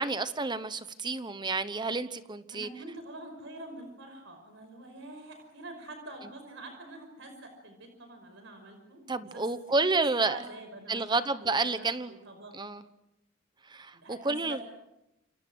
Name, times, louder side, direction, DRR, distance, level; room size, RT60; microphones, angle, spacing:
voice 1, 0.0-2.7 9.1-10.4 10.9-12.1 12.6-12.8 13.7-14.6, right 3 dB, 20° right, 12 dB, 1.0 m, -30 dB
voice 2, 2.5-9.5 9.8-9.9 10.2-12.6 13.9-14.6, right 2 dB, 65° right, 5 dB, 5.5 m, -46 dB
29.0 x 27.5 x 6.3 m, 0.87 s
head